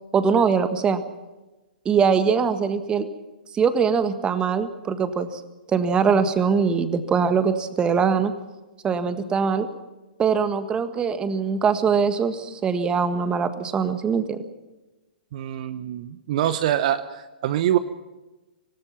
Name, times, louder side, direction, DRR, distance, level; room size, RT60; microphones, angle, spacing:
voice 1, 0.1-1.0 1.9-3.1 3.5-5.4 5.7-8.3 8.8-9.7 10.2-14.4, right 6 dB, 15° right, 10 dB, 1.7 m, -22 dB
voice 2, 15.3-17.8, right 11 dB, 45° right, 12 dB, 1.0 m, -24 dB
26.0 x 19.0 x 5.8 m, 1.1 s
figure-of-eight pair, 115°, 5 cm